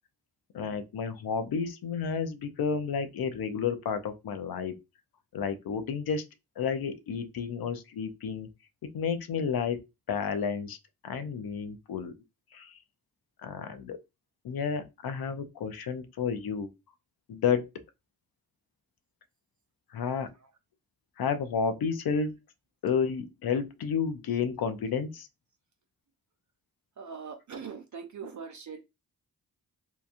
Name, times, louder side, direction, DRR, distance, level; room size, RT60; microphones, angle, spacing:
voice 1, 0.5-4.8 5.3-6.2 6.6-8.5 8.9-10.8 11.0-12.1 12.5-12.8 13.4-14.0 14.4-16.7 17.3-17.7 19.9-20.3 21.2-22.4 22.8-25.3, left 6 dB, 80° left, 0.6 m, -31 dB
voice 2, 27.0-28.8, right 6 dB, 55° right, 0.5 m, -41 dB
2.8 x 2.2 x 2.4 m
cardioid pair, 50°, 36 cm